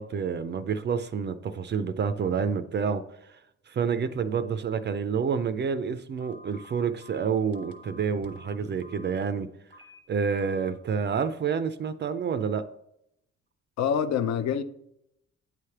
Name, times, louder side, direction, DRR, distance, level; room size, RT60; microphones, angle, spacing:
voice 1, 0.0-3.0 3.7-9.5 10.1-12.7, right 6 dB, 35° right, 0.4 m, -28 dB
Telephone, 6.2-9.1 9.7-10.0 10.4-10.7, left 1 dB, 15° left, 0.9 m, -50 dB
voice 2, 13.8-14.6, left 8 dB, 65° left, 0.6 m, -26 dB
9.1 x 3.3 x 5.7 m
cardioid pair, 140°, 30 cm